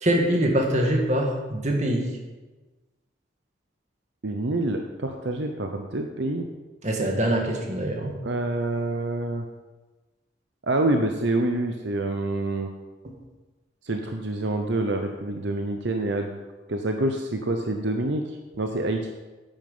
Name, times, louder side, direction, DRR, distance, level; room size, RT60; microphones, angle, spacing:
voice 1, 0.0-2.0 6.8-8.2, right 1 dB, 35° right, 1 dB, 1.8 m, -23 dB
voice 2, 4.2-6.5 8.2-9.5 10.6-12.7 13.8-16.4 16.7-19.1, right 2 dB, 70° right, 4 dB, 0.8 m, -27 dB
10.5 x 9.0 x 5.6 m, 1.2 s
head